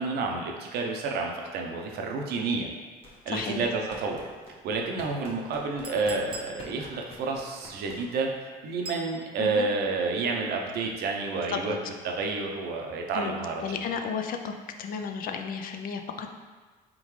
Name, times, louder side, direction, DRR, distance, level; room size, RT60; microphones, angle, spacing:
voice 1, 0.0-2.7 3.3-4.2 4.6-11.7 12.0-13.8, right 3 dB, 70° right, 1 dB, 0.7 m, -30 dB
sound 1, 3.0-8.3, left 1 dB, 35° left, 0.9 m, -48 dB
voice 2, 3.3-3.7 9.4-9.7 11.5-11.8 13.1-14.5 14.8-16.4, left 6 dB, 55° left, 5 dB, 0.4 m, -33 dB
Chink clink, 5.8-6.6 8.8-9.1, right 2 dB, 30° right, 0.6 m, -41 dB
3.7 x 3.7 x 3.2 m, 1.4 s
cardioid pair, 110°, 17 cm